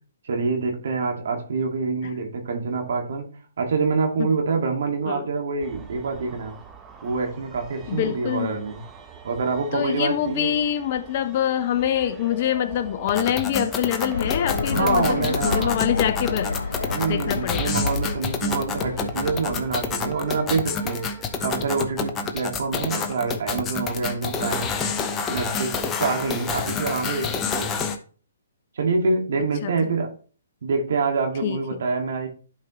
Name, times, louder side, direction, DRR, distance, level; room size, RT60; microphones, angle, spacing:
voice 1, 0.2-3.3 3.6-6.5 7.0-8.8 9.2-10.5 14.7-15.8 16.9-24.7 25.3-27.8 28.8-30.1 30.6-32.3, right 4 dB, 65° right, 2.1 m, -26 dB
sound 1, 5.6-21.7, right 6 dB, 15° right, 1.0 m, -44 dB
voice 2, 7.9-8.5 9.7-16.5 17.1-17.7 29.6-29.7 31.4-31.6, left 10 dB, 45° left, 0.9 m, -25 dB
sound 2, 13.0-28.0, left 4 dB, 20° left, 1.0 m, -28 dB
sound 3, 14.1-19.8, left 4 dB, 85° left, 0.5 m, -29 dB
11.0 x 5.4 x 3.1 m
hypercardioid pair, 140°, 0 cm